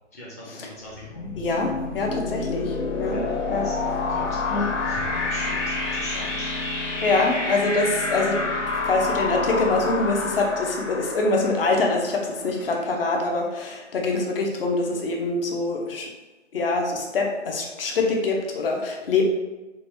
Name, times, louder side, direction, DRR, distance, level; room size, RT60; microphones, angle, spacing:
voice 1, 0.1-1.3 3.1-6.5, equal, 15° left, -6 dB, 0.4 m, -41 dB
sound 1, 0.9-12.6, left 3 dB, 90° left, 0.9 m, -28 dB
voice 2, 1.4-3.2 3.5-3.7 4.5-4.7 7.0-16.1 16.5-19.2, left 3 dB, 50° left, 1 dB, 0.7 m, -24 dB
3.8 x 2.2 x 3.1 m, 1.1 s
hypercardioid pair, 145°, 36 cm